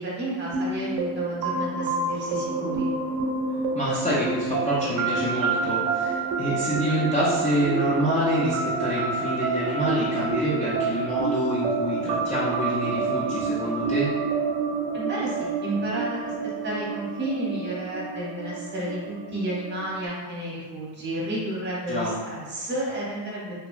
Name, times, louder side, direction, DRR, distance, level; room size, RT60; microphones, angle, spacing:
voice 1, 0.0-2.9 14.9-16.3 16.6-23.7, right 1 dB, 25° right, -6 dB, 0.8 m, -31 dB
sound 1, 0.5-20.1, right 4 dB, 60° right, 0.5 m, -28 dB
voice 2, 3.7-14.1 21.9-22.1, equal, 20° left, -9 dB, 0.3 m, -27 dB
2.9 x 2.2 x 2.4 m, 1.4 s
cardioid pair, 125°, 46 cm